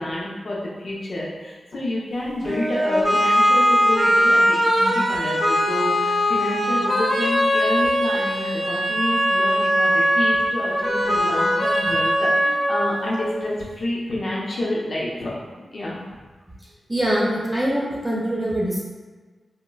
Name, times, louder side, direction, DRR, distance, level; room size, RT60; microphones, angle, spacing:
voice 1, 0.0-16.0, left 1 dB, 55° left, -5 dB, 0.6 m, -29 dB
sound 1, 2.4-13.4, equal, 50° right, 1.3 m, -20 dB
voice 2, 16.9-18.8, right 1 dB, 15° right, -6 dB, 0.8 m, -23 dB
3.9 x 2.1 x 2.2 m, 1.3 s
wide cardioid pair, 105°, 0 cm